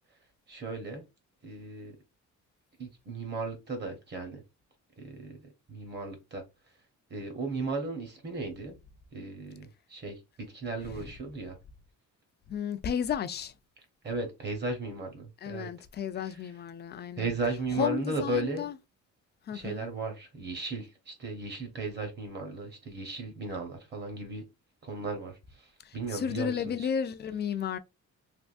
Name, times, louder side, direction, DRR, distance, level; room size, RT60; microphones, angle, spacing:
voice 1, 0.5-1.0 1.4-2.0 2.8-4.4 5.0-6.4 7.1-8.8 9.1-11.6 14.0-15.7 16.2-16.4 17.2-18.7 19.5-24.5 24.8-26.9, right 3 dB, 35° right, 1.0 m, -36 dB
voice 2, 12.5-13.5 15.4-17.3 17.8-18.7 19.5-19.9 25.8-27.8, left 8 dB, 35° left, 0.4 m, -33 dB
3.4 x 2.6 x 2.5 m
cardioid pair, 160°, 30 cm